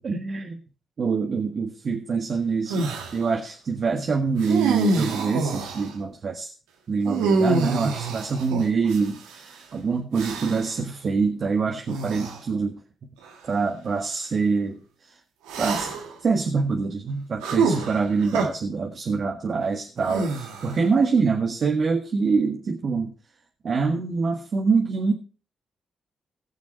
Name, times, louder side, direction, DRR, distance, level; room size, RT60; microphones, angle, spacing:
voice 1, 0.0-0.6 1.0-2.9 3.1-6.5 6.9-12.8 13.4-14.8 15.6-16.0 16.2-23.1 23.6-25.1, right 4 dB, 55° right, 2 dB, 1.6 m, -25 dB
sound 1, 2.7-3.2 4.4-5.9 7.1-9.4 10.1-10.8 11.9-12.4 13.2-13.4 15.5-16.2 17.4-18.5 20.0-20.9, right 4 dB, 90° right, 1.6 m, -26 dB
18.0 x 6.2 x 4.5 m, 0.37 s
supercardioid pair, 45°, 0 cm